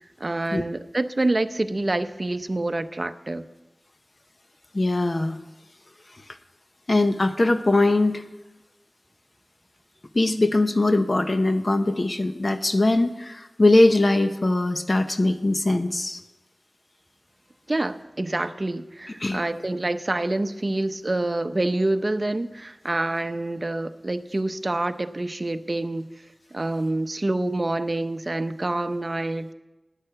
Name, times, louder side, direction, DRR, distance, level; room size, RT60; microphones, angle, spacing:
voice 1, 0.2-3.4 17.7-26.1 26.5-29.5, right 2 dB, 40° right, 10 dB, 0.7 m, -27 dB
voice 2, 4.7-5.4 6.9-8.2 10.1-16.2 19.2-19.4, left 2 dB, 40° left, 8 dB, 0.7 m, -21 dB
11.0 x 9.9 x 7.8 m, 1.1 s
wide cardioid pair, 75°, 0 cm